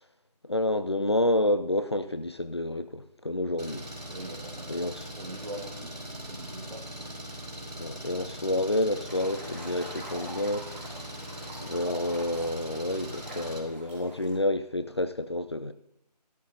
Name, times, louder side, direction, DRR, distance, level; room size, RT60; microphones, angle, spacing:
voice 1, 0.4-3.9 4.7-5.1 7.8-11.1 11.6-15.7, left 1 dB, 40° left, 0.5 m, -29 dB
Engine, 3.6-13.6, equal, 80° right, 4.8 m, -41 dB
voice 2, 4.1-4.9 5.2-7.2, right 1 dB, 60° right, 1.8 m, -43 dB
sound 1, 9.1-14.4, right 1 dB, 20° right, 3.7 m, -45 dB
14.5 x 13.0 x 2.7 m
figure-of-eight pair, 165°, 21 cm